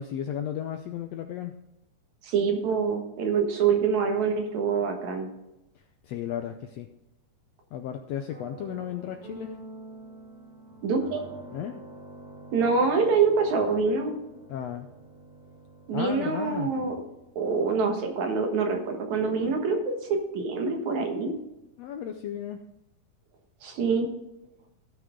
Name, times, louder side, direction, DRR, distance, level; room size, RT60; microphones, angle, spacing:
voice 1, 0.0-1.5 6.0-6.9 7.7-9.6 11.5-11.8 14.5-14.9 15.9-16.7 21.8-22.6, left 9 dB, 75° left, 6 dB, 1.5 m, -34 dB
voice 2, 2.2-5.3 10.8-11.2 12.5-14.2 15.9-17.0 17.4-21.3 23.6-24.1, right 5 dB, 70° right, 3 dB, 2.8 m, -25 dB
sound 1, 8.3-17.4, right 2 dB, 85° right, 3.9 m, -47 dB
16.5 x 5.9 x 3.7 m, 0.90 s
omnidirectional pair, 3.5 m